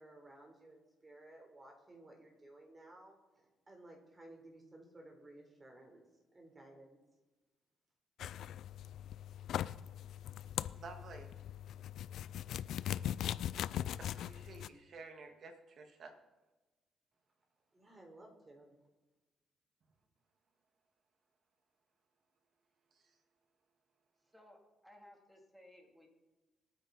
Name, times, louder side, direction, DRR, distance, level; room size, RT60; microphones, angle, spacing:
voice 1, 0.0-3.2 3.7-6.0 6.3-7.0 17.7-18.7, right 1 dB, 25° right, 2 dB, 4.0 m, -57 dB
sound 1, 8.2-14.7, left 11 dB, 75° left, 0.3 m, -40 dB
voice 2, 10.8-11.3 14.0-16.1 22.9-23.0, right 4 dB, 55° right, 5 dB, 2.0 m, -52 dB
voice 3, 24.2-26.1, left 1 dB, ahead, 1 dB, 3.2 m, -60 dB
21.0 x 9.3 x 4.3 m, 1.2 s
cardioid pair, 90°, 0 cm